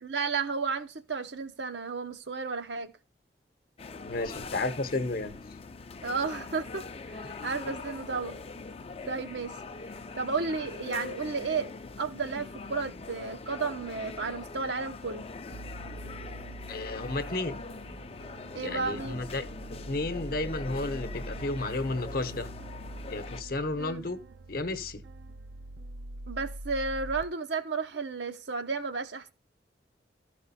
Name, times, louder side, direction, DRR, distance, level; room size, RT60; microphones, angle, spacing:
voice 1, 0.0-2.9 6.0-8.4 9.0-9.5 10.1-11.7 12.0-15.2 18.5-19.2 23.8-24.1 26.3-29.3, right 4 dB, 85° right, 1.0 m, -33 dB
sound 1, 3.8-23.4, left 4 dB, 35° left, 0.5 m, -42 dB
voice 2, 4.0-5.4 16.7-17.6 18.6-19.4 19.9-22.5 23.1-24.2 24.5-25.0, left 2 dB, 55° left, 0.8 m, -32 dB
sound 2, 15.5-27.2, right 1 dB, 65° right, 0.5 m, -43 dB
13.5 x 4.9 x 4.1 m
head